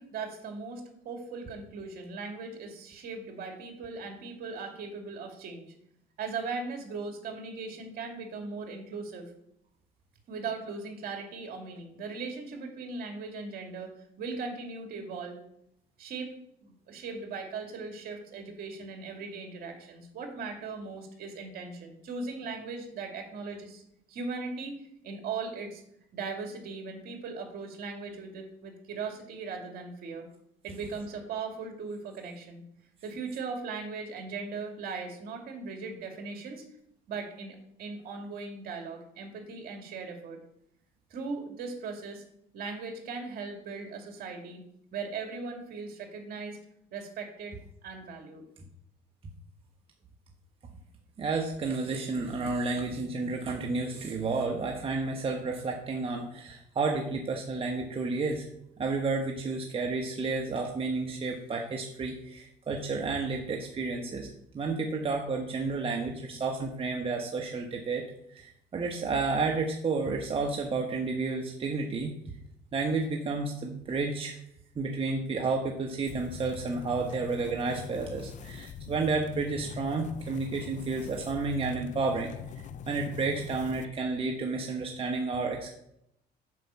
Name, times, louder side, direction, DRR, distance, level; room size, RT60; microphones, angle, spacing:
voice 1, 0.0-5.7 6.2-9.3 10.3-13.9 14.2-15.4 16.0-16.3 16.6-23.8 24.1-25.8 26.1-30.3 30.6-32.6 33.0-36.6 37.1-40.4 41.1-42.2 42.5-44.6 44.9-46.6 46.9-47.6 47.8-48.4, right 4 dB, 65° right, 2 dB, 2.5 m, -38 dB
voice 2, 51.2-58.5 58.8-64.3 64.5-68.0 68.3-72.2 72.7-74.4 74.7-82.3 82.9-85.8, right 3 dB, 35° right, 0 dB, 1.3 m, -31 dB
sound 1, 76.1-83.8, left 8 dB, 45° left, 0.6 m, -43 dB
8.3 x 5.4 x 7.1 m, 0.76 s
cardioid pair, 110°, 17 cm